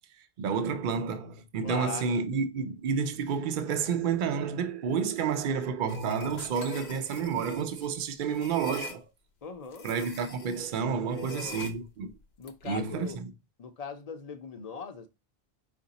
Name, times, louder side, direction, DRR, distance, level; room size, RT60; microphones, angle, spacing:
voice 1, 0.4-9.0 9.8-12.1 12.6-13.3, right 6 dB, 60° right, 0.7 m, -30 dB
voice 2, 1.6-2.2 9.4-9.9 11.1-11.7 12.4-13.2 13.6-15.1, left 5 dB, 45° left, 0.6 m, -40 dB
sound 1, 5.9-9.0 9.7-10.7 11.1-13.1, left 3 dB, 85° left, 0.9 m, -44 dB
4.7 x 2.5 x 4.0 m
omnidirectional pair, 1.0 m